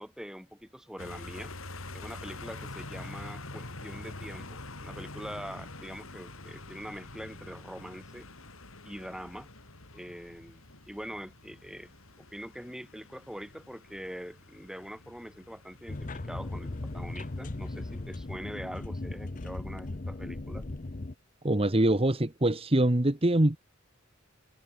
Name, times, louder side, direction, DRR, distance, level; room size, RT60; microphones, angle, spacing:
voice 1, 0.0-1.5 1.9-8.3 8.8-9.5 9.9-11.9 12.3-20.7, equal, 5° right, 6.7 m, -43 dB
sound 1, 1.0-19.5, left 2 dB, 85° left, 4.3 m, -46 dB
sound 2, 15.9-21.1, left 2 dB, 40° left, 0.8 m, -37 dB
voice 2, 21.4-23.6, right 1 dB, 30° right, 1.3 m, -24 dB
head